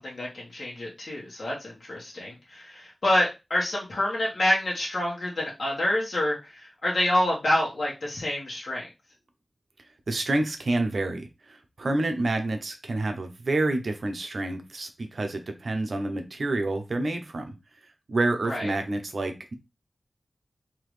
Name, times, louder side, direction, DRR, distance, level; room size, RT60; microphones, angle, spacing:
voice 1, 0.0-8.9 18.4-18.7, left 1 dB, 75° left, -5 dB, 1.3 m, -27 dB
voice 2, 10.1-17.6 18.1-19.5, right 2 dB, 70° right, 6 dB, 0.8 m, -28 dB
3.8 x 2.8 x 3.2 m, 0.25 s
wide cardioid pair, 70°, 0 cm